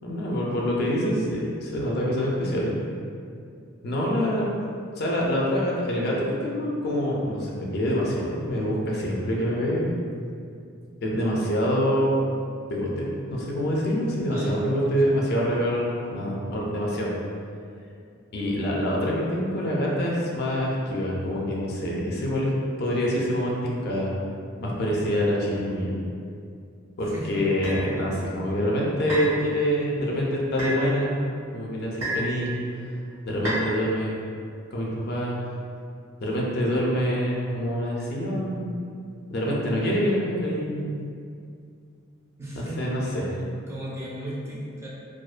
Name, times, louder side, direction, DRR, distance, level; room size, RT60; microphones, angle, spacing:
voice 1, 0.0-2.7 3.8-4.5 5.0-10.0 11.0-12.1 12.7-17.1 18.3-22.5 22.8-24.1 24.6-25.9 27.0-31.1 31.5-32.6 33.3-34.1 34.7-35.4 36.2-38.7 39.3-40.8 42.6-43.2, equal, 50° left, -4 dB, 0.4 m, -26 dB
voice 2, 14.0-14.9 27.1-27.5 42.4-42.9 43.7-44.9, right 1 dB, 15° right, -7 dB, 0.4 m, -36 dB
sound 1, 27.6-27.8 29.1-29.4 30.6-30.8 32.0-32.3 33.4-33.7, equal, 85° right, 1.1 m, -28 dB
2.4 x 2.1 x 2.4 m, 2.4 s
head